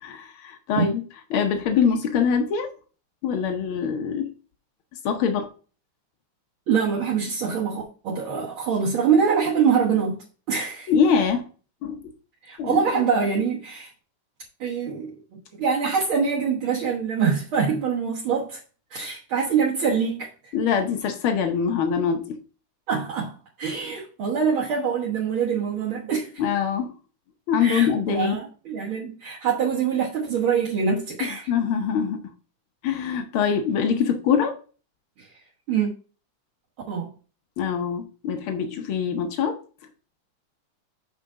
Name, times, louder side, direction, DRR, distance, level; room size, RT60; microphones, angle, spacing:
voice 1, 0.0-1.0 1.3-2.7 3.2-4.3 5.0-5.5 10.9-11.4 11.8-12.0 12.6-12.8 20.5-22.4 26.4-26.9 27.5-28.4 31.2-32.2 32.8-34.5 37.6-39.6, left 7 dB, 90° left, 1.1 m, -23 dB
voice 2, 6.7-10.2 10.5-10.9 12.4-13.9 14.6-15.2 15.5-18.6 18.9-20.5 22.9-26.4 27.6-31.5 35.2-35.3 35.7-35.9 36.9-37.1, right 6 dB, 55° right, 1.6 m, -24 dB
7.4 x 4.9 x 3.7 m
omnidirectional pair, 3.5 m